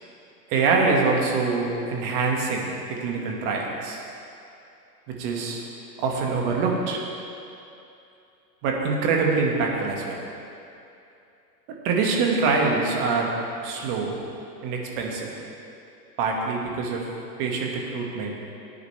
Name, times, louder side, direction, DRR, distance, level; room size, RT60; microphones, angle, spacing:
voice 1, 0.5-4.0 5.1-5.7 6.0-7.0 8.6-10.2 11.8-14.2 14.6-15.3 16.2-17.1 17.4-18.3, right 4 dB, 35° right, 0 dB, 1.9 m, -25 dB
18.0 x 9.7 x 3.4 m, 2.7 s
hypercardioid pair, 140°, 50 cm